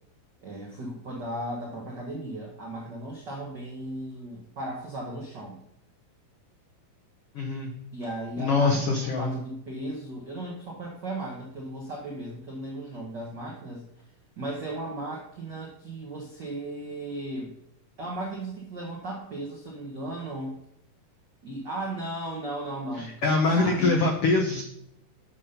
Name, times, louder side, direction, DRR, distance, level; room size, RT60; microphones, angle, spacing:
voice 1, 0.4-5.6 7.9-13.8 14.4-17.6 18.0-20.6 21.4-23.2 23.5-24.0, right 1 dB, 80° right, -2 dB, 0.9 m, -36 dB
voice 2, 7.3-7.7 8.4-9.3 23.0-24.6, left 3 dB, 85° left, 2 dB, 1.3 m, -24 dB
7.4 x 5.6 x 5.1 m, 0.78 s
omnidirectional pair, 3.9 m